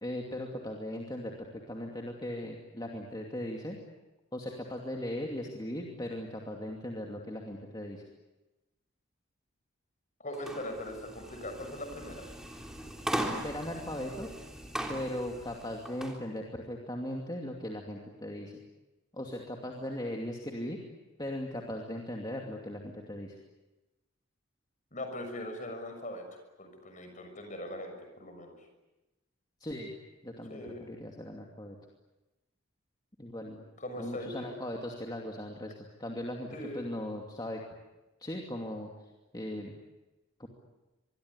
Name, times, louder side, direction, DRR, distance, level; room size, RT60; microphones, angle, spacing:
voice 1, 0.0-3.8 4.3-8.0 13.4-14.3 14.9-18.6 19.1-20.8 21.2-23.4 29.6-29.9 30.2-31.8 33.2-33.6 34.0-36.5 36.7-37.6 38.2-39.7 40.4-40.5, left 1 dB, 20° left, 0 dB, 2.6 m, -38 dB
voice 2, 10.2-12.3 24.9-28.5 30.5-30.8 33.8-34.5 36.5-36.9, left 1 dB, 35° left, 5 dB, 6.6 m, -40 dB
sound 1, 10.3-16.2, right 1 dB, 5° right, 3.4 m, -39 dB
25.5 x 23.0 x 9.8 m, 1.0 s
head